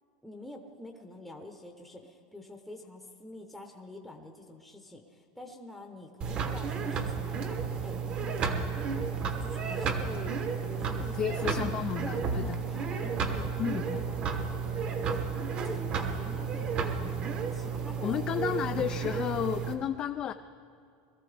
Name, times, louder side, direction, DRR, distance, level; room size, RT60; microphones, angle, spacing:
voice 1, 0.2-8.3 9.4-10.3 10.7-14.5 15.0-15.2 15.6-17.2 17.5-18.2, left 1 dB, ahead, 2 dB, 0.9 m, -46 dB
sound 1, 6.2-19.7, right 5 dB, 35° right, 1.1 m, -32 dB
voice 2, 10.9-12.6 13.6-14.0 18.0-20.3, left 9 dB, 30° left, 7 dB, 0.4 m, -32 dB
21.5 x 13.5 x 3.4 m, 2.4 s
supercardioid pair, 150°, 4 cm